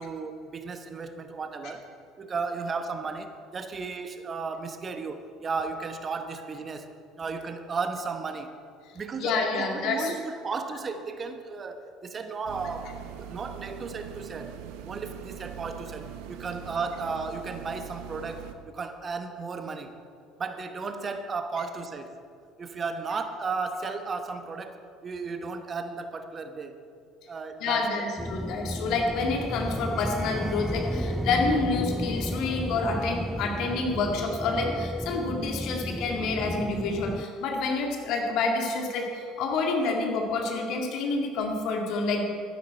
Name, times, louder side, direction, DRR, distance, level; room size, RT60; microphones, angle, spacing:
voice 1, 0.0-1.9 2.2-8.5 8.9-19.9 20.4-22.2 22.6-26.8 27.3-28.1, right 4 dB, 35° right, 8 dB, 1.0 m, -35 dB
voice 2, 9.2-10.1 27.6-42.3, left 3 dB, 60° left, 1 dB, 1.9 m, -28 dB
sound 1, 12.4-18.5, right 10 dB, 65° right, 0.8 m, -42 dB
sound 2, 28.2-37.2, equal, ahead, 0.3 m, -33 dB
12.5 x 10.5 x 4.5 m, 2.3 s
hypercardioid pair, 60°, 0 cm